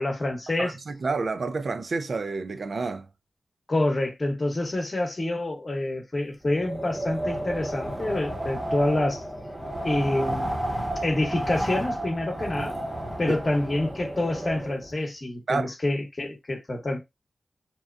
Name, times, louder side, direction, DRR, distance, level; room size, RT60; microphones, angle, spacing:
voice 1, 0.0-0.7 3.7-9.2 9.8-10.6 11.0-12.7 13.2-17.0, left 2 dB, 45° left, 0.9 m, -27 dB
voice 2, 0.6-3.1 15.5-15.7, right 4 dB, 70° right, 0.4 m, -29 dB
Wind, 6.5-14.9, right 1 dB, 20° right, 0.8 m, -32 dB
2.8 x 2.1 x 2.4 m
cardioid pair, 55°, 0 cm